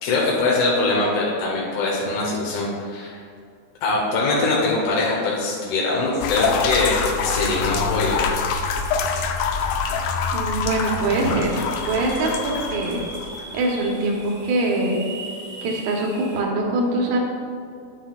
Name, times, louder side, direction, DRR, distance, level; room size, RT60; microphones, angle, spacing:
voice 1, 0.0-3.2 3.8-8.3, left 3 dB, 70° left, -4 dB, 2.0 m, -22 dB
sound 1, 6.2-13.8, left 5 dB, 85° left, 1.8 m, -25 dB
voice 2, 10.3-11.5 11.9-13.0 13.5-15.0 15.6-17.2, right 2 dB, 75° right, -1 dB, 2.7 m, -23 dB
sound 2, 11.1-16.4, right 1 dB, 50° right, 1.5 m, -38 dB
9.9 x 7.7 x 2.3 m, 2.3 s
omnidirectional pair, 4.4 m